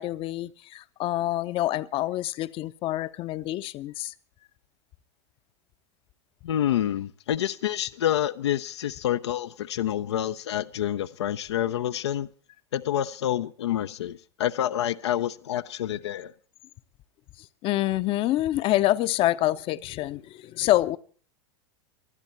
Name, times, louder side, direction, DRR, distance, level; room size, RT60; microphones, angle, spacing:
voice 1, 0.0-4.1 17.4-21.0, left 15 dB, 40° left, 0.7 m, -26 dB
voice 2, 6.4-12.3 12.7-16.3, left 11 dB, 70° left, 0.6 m, -28 dB
19.5 x 12.5 x 4.3 m
figure-of-eight pair, 90°, 15 cm